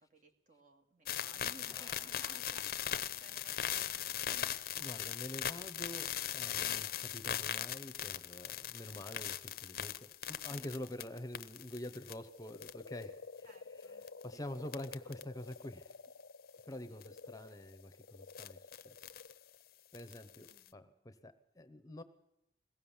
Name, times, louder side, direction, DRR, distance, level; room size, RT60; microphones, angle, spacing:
voice 1, 0.0-4.5 10.5-10.7 13.4-14.4 16.7-17.1 17.5-17.8 20.5-20.9, right 2 dB, 45° right, 4 dB, 2.3 m, -61 dB
sound 1, 1.1-12.1 12.5-13.0 14.0-14.2 14.7-15.2 15.5-15.6 17.0-17.2 18.3-19.3 19.9-20.7, left 10 dB, 55° left, 0.7 m, -39 dB
voice 2, 1.7-2.2 4.8-13.5 14.2-16.0 16.6-19.1 19.9-22.0, left 1 dB, 20° left, 10 dB, 0.9 m, -47 dB
sound 2, 11.8-20.5, left 4 dB, 90° left, 0.7 m, -52 dB
21.5 x 16.5 x 7.2 m, 0.85 s
head